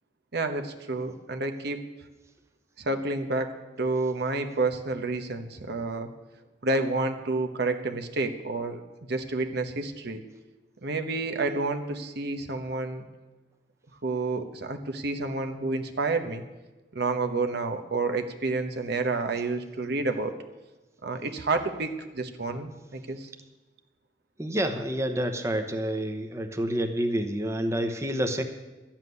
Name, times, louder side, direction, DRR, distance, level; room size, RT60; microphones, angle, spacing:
voice 1, 0.3-1.8 2.8-6.1 6.6-8.8 9.1-10.2 10.8-13.0 14.0-16.4 16.9-20.3 21.0-23.3, right 3 dB, 65° right, 6 dB, 1.1 m, -29 dB
voice 2, 24.4-28.4, right 1 dB, 15° right, 6 dB, 1.0 m, -28 dB
13.0 x 7.4 x 9.6 m, 1.1 s
head